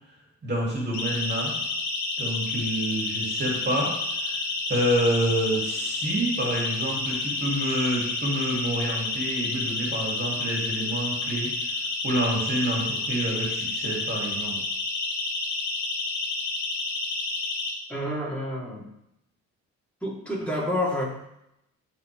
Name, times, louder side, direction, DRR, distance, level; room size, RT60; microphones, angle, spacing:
voice 1, 0.4-1.6 2.2-4.4 4.7-14.6, right 1 dB, 35° right, -3 dB, 3.0 m, -28 dB
Siren, 0.9-17.7, left 3 dB, 65° left, 2.3 m, -30 dB
voice 2, 17.9-18.8 20.0-21.0, left 1 dB, 5° left, -6 dB, 3.8 m, -28 dB
14.5 x 4.9 x 3.6 m, 0.82 s
cardioid pair, 90°, 30 cm